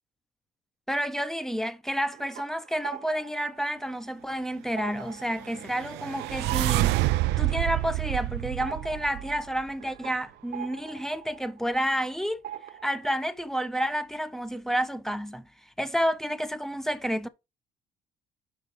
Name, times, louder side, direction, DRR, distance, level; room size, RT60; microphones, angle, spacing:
voice 1, 0.9-7.0 7.4-12.4 12.8-15.5 15.8-17.3, equal, ahead, 0.7 m, -30 dB
sound 1, 1.9-4.3 4.6-12.1 12.4-13.3, right 10 dB, 60° right, 1.0 m, -44 dB
sound 2, 5.5-9.6, right 17 dB, 85° right, 0.4 m, -28 dB
6.0 x 5.3 x 5.3 m
cardioid pair, 110°, 17 cm